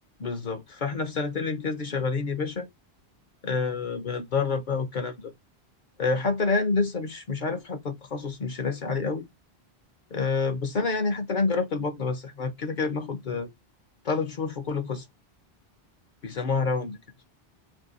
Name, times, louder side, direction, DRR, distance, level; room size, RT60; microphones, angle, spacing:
voice 1, 0.2-2.7 3.4-5.3 6.0-9.2 10.1-13.5 14.0-15.0 16.2-17.0, left 4 dB, 55° left, 0.7 m, -28 dB
2.7 x 2.7 x 3.8 m
omnidirectional pair, 1.1 m